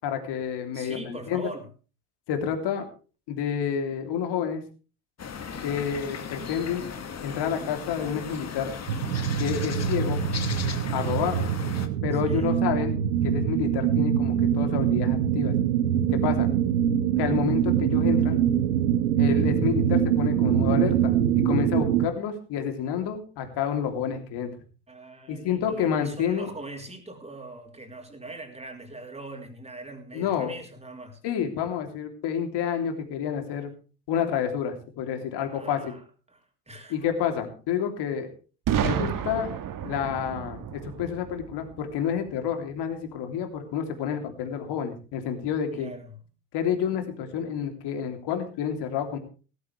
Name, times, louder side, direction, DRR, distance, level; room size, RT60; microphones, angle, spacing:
voice 1, 0.0-1.5 2.3-2.9 3.3-4.6 5.6-6.9 7.2-8.7 9.4-10.2 10.9-11.5 12.0-13.0 13.2-15.5 16.1-16.5 17.2-18.5 19.2-24.5 25.3-26.5 30.1-30.5 31.2-33.7 34.1-35.9 36.9-38.3 38.8-39.5 39.8-45.9 46.5-49.2, left 8 dB, 55° left, 5 dB, 3.3 m, -29 dB
voice 2, 0.7-1.7 11.3-11.5 12.1-12.5 24.9-31.2 35.4-37.0 45.7-46.2, right 2 dB, 15° right, 2 dB, 4.2 m, -42 dB
sound 1, 5.2-11.9, left 6 dB, 35° left, 2.0 m, -37 dB
sound 2, 8.9-22.1, right 9 dB, 80° right, 1.2 m, -24 dB
Boom, 38.7-42.5, right 9 dB, 45° right, 1.7 m, -31 dB
17.5 x 13.5 x 3.4 m, 0.36 s
hypercardioid pair, 65°, 47 cm